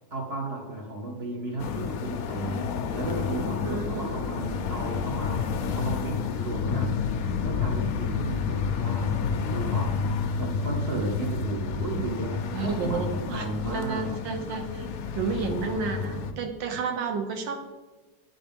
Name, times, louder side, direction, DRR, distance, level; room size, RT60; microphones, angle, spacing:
voice 1, 0.1-7.1 7.4-14.2, right 2 dB, 50° right, 0 dB, 0.8 m, -34 dB
sound 1, 1.6-16.3, left 5 dB, 70° left, 0.8 m, -30 dB
voice 2, 3.6-4.2 12.5-14.9 15.1-17.6, right 4 dB, 85° right, 5 dB, 1.5 m, -31 dB
10.0 x 3.8 x 3.4 m, 1.2 s
omnidirectional pair, 2.0 m